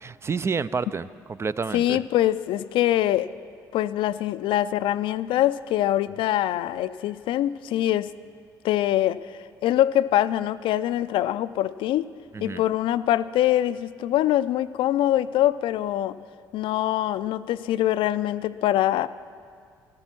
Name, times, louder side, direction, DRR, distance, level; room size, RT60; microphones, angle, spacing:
voice 1, 0.0-2.0 12.3-12.6, right 5 dB, 30° right, 16 dB, 0.4 m, -29 dB
voice 2, 1.7-3.3 3.7-8.1 8.6-9.2 9.6-12.0 12.4-16.2 16.5-19.1, left 13 dB, 65° left, 15 dB, 0.4 m, -23 dB
13.0 x 12.5 x 6.1 m, 2.1 s
hypercardioid pair, 55°, 9 cm